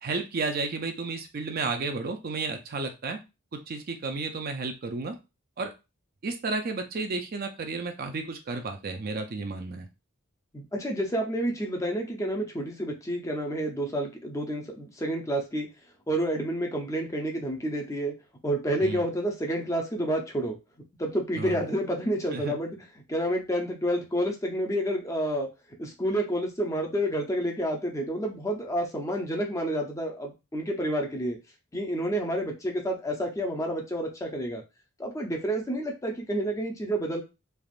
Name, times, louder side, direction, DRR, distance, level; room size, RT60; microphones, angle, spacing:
voice 1, 0.0-3.2 3.5-5.2 5.6-5.7 6.2-9.9 18.8-19.1 21.4-21.7 22.3-22.5, right 3 dB, 45° right, 5 dB, 0.5 m, -32 dB
voice 2, 10.5-15.7 16.1-18.1 18.4-20.6 21.0-22.8 23.1-25.5 25.8-31.4 31.7-34.6 35.0-37.2, right 1 dB, 15° left, 1 dB, 0.5 m, -29 dB
3.4 x 2.3 x 2.4 m, 0.27 s
head